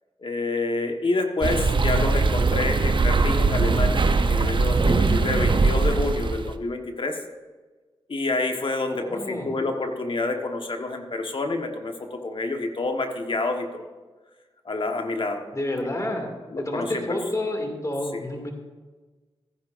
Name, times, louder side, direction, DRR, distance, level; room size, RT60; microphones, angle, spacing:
voice 1, 0.2-7.2 8.1-13.9 14.6-15.4 16.5-17.2 18.1-18.2, left 2 dB, 55° left, 4 dB, 1.3 m, -28 dB
sound 1, 1.4-6.5, right 3 dB, 50° right, 0.7 m, -21 dB
voice 2, 8.9-9.5 15.5-16.3 16.6-18.5, left 1 dB, 30° left, 3 dB, 2.3 m, -29 dB
15.0 x 10.0 x 2.5 m, 1.3 s
cardioid pair, 40°, 10 cm